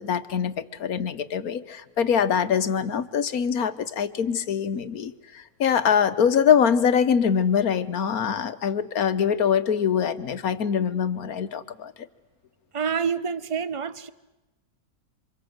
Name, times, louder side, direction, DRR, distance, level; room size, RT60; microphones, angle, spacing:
voice 1, 0.0-11.9, left 7 dB, 70° left, 1.6 m, -23 dB
voice 2, 12.7-14.1, right 6 dB, 25° right, 0.8 m, -27 dB
27.5 x 26.0 x 8.0 m
omnidirectional pair, 1.6 m